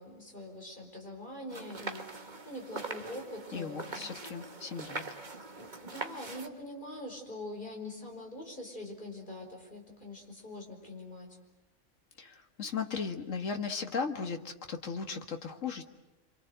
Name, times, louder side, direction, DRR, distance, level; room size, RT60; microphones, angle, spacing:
voice 1, 0.0-4.1 5.6-11.4, left 1 dB, 40° left, 1 dB, 5.5 m, -44 dB
sound 1, 1.5-6.5, right 3 dB, 35° right, 1.7 m, -42 dB
voice 2, 3.5-5.0 12.2-15.8, left 5 dB, 80° left, 5 dB, 2.1 m, -36 dB
27.5 x 26.0 x 8.0 m, 0.98 s
omnidirectional pair, 1.3 m